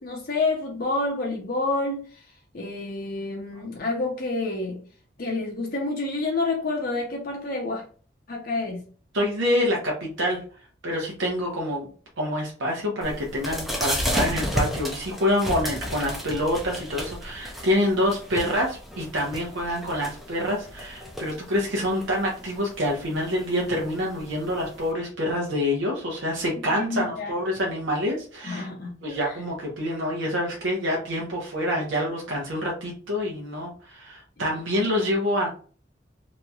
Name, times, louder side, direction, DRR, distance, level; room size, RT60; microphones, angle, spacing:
voice 1, 0.0-4.8 5.2-7.8 8.3-8.8 15.5-15.6 26.8-27.3 28.4-29.0 29.2-29.4, left 3 dB, 50° left, 0 dB, 0.6 m, -28 dB
voice 2, 9.1-10.4 10.8-11.9 12.2-28.7 29.0-35.5, left 1 dB, 90° right, -1 dB, 0.9 m, -26 dB
sound 1, 13.0-24.9, equal, ahead, 0.5 m, -33 dB
3.0 x 2.7 x 2.3 m, 0.41 s
head